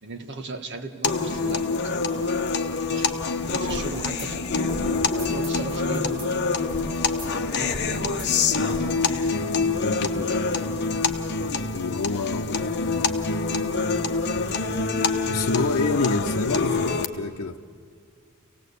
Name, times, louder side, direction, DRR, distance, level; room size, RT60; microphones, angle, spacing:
voice 1, 0.0-2.5 2.8-4.4 4.8-6.3 7.3-8.5, right 3 dB, 55° right, 6 dB, 1.5 m, -37 dB
sound 1, 1.0-17.1, left 4 dB, 50° left, 1.0 m, -26 dB
sound 2, 3.3-8.8, equal, 25° right, 5.3 m, -37 dB
voice 2, 9.7-10.4 11.7-13.3 15.3-17.6, left 3 dB, 85° left, 2 dB, 0.8 m, -28 dB
26.5 x 18.0 x 8.3 m, 2.2 s
head